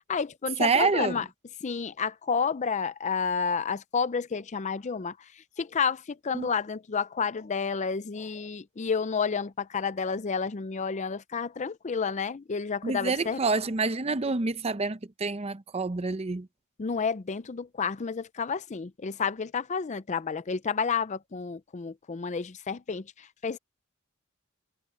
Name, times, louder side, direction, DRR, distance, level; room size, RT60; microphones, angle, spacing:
voice 1, 0.1-1.2 1.6-13.4 16.8-23.6, left 5 dB, 30° left, 0.5 m, -30 dB
voice 2, 0.6-1.2 6.3-6.5 12.8-16.5, right 4 dB, 30° right, 0.6 m, -27 dB
head